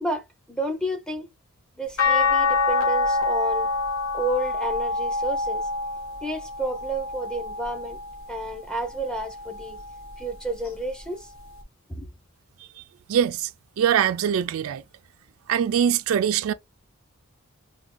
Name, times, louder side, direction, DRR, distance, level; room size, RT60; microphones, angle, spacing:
voice 1, 0.0-1.3 1.8-3.7 4.1-5.7 6.2-8.0 8.3-9.8 10.2-11.3 11.9-12.1, right 1 dB, 5° left, 0.6 m, -31 dB
sound 1, 2.0-8.3 8.9-10.2 11.6-11.7, left 3 dB, 70° left, 1.2 m, -26 dB
voice 2, 13.1-13.5 13.8-14.8 15.5-16.5, right 8 dB, 75° right, 0.3 m, -22 dB
3.5 x 2.3 x 3.6 m
head